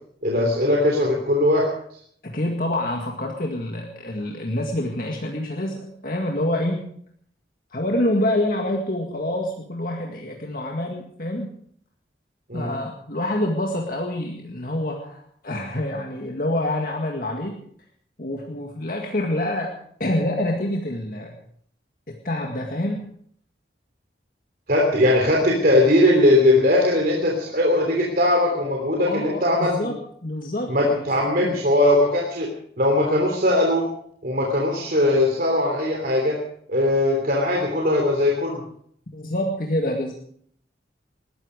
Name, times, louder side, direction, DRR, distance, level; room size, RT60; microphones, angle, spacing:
voice 1, 0.2-1.7 12.5-12.7 24.7-29.9 30.7-32.5 32.8-33.9 34.2-36.4 36.7-38.6, left 1 dB, 55° right, 0 dB, 3.2 m, -20 dB
voice 2, 2.2-6.8 7.7-11.5 12.5-17.6 18.2-21.4 22.1-23.1 29.1-30.0 30.2-31.0 31.4-31.6 39.1-40.1, left 1 dB, 50° left, 1 dB, 2.0 m, -27 dB
20.5 x 13.5 x 5.1 m, 0.64 s
head